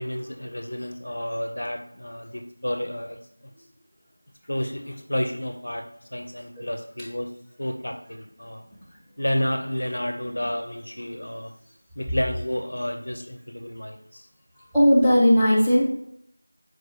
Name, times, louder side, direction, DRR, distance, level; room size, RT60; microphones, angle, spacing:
voice 1, 0.0-3.2 4.5-5.9 6.1-7.3 7.6-8.6 9.2-11.5 12.0-14.2, equal, 70° left, 5 dB, 0.6 m, -30 dB
voice 2, 14.7-15.8, equal, ahead, -16 dB, 0.5 m, -17 dB
4.6 x 2.2 x 3.1 m, 0.72 s
figure-of-eight pair, 175°, 0 cm